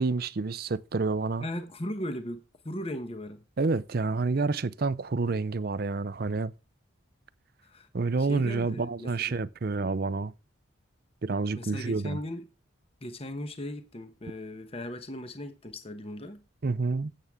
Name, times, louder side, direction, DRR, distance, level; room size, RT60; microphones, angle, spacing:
voice 1, 0.0-1.5 3.6-6.5 7.9-10.3 11.2-12.2 16.6-17.1, right 3 dB, 50° right, 0.5 m, -28 dB
voice 2, 1.4-3.4 7.6-7.9 8.2-9.4 11.5-12.4 13.0-16.4, left 1 dB, 30° left, 1.0 m, -38 dB
12.5 x 8.4 x 3.6 m
head